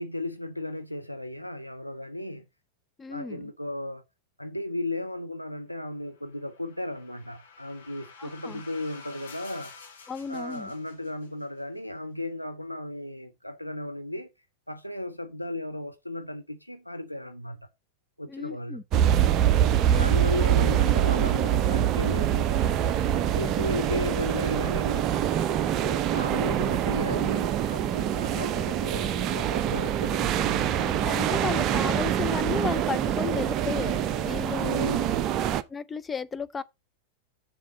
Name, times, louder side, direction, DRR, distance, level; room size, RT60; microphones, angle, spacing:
voice 1, 0.0-2.5 3.1-4.0 4.4-9.8 10.3-14.3 14.7-17.7 18.2-18.8 19.9-22.5 23.3-25.1 25.8-30.8 34.6-35.3, left 1 dB, 90° left, 0.6 m, -35 dB
voice 2, 3.0-3.5 8.2-8.6 10.1-10.7 18.3-18.8 19.7-20.3 30.8-34.8 35.7-36.6, left 5 dB, 15° left, 0.6 m, -34 dB
sound 1, 6.2-11.4, left 5 dB, 60° left, 2.6 m, -49 dB
sound 2, 18.9-35.6, right 10 dB, 35° right, 0.6 m, -25 dB
7.5 x 7.1 x 4.1 m
figure-of-eight pair, 90°, 0 cm